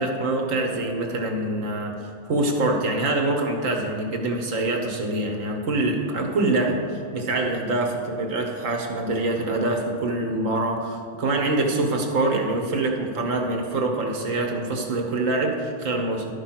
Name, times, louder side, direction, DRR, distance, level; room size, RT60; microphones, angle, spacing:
voice 1, 0.0-6.8 7.1-16.4, right 2 dB, 90° right, 2 dB, 1.4 m, -25 dB
12.0 x 5.2 x 5.9 m, 2.5 s
omnidirectional pair, 1.3 m